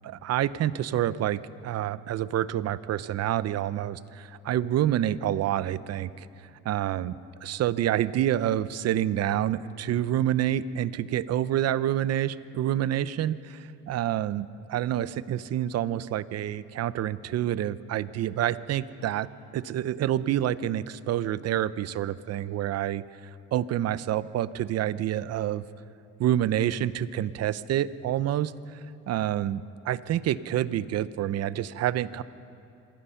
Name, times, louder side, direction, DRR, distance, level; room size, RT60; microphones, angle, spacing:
voice 1, 0.0-6.3 6.6-19.3 19.5-23.0 23.5-25.6 26.2-28.8 29.1-32.2, right 11 dB, 60° right, 16 dB, 0.7 m, -28 dB
26.5 x 19.0 x 5.7 m, 2.6 s
cardioid pair, 115°, 29 cm